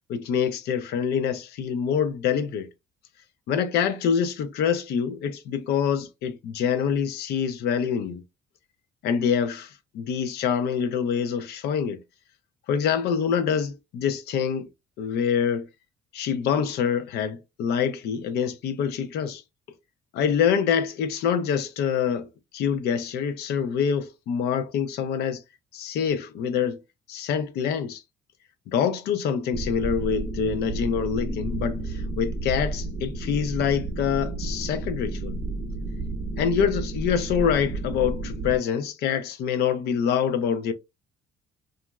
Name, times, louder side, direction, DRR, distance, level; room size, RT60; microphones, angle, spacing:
voice 1, 0.1-2.7 3.5-8.2 9.0-12.0 12.7-14.7 15.0-15.7 16.1-19.4 20.1-25.4 25.7-26.8 27.1-28.0 28.7-35.3 36.4-40.7, left 7 dB, 75° left, 0.5 m, -25 dB
sound 1, 29.5-38.6, right 2 dB, 45° right, 0.7 m, -31 dB
2.9 x 2.4 x 2.2 m
cardioid pair, 110°, 17 cm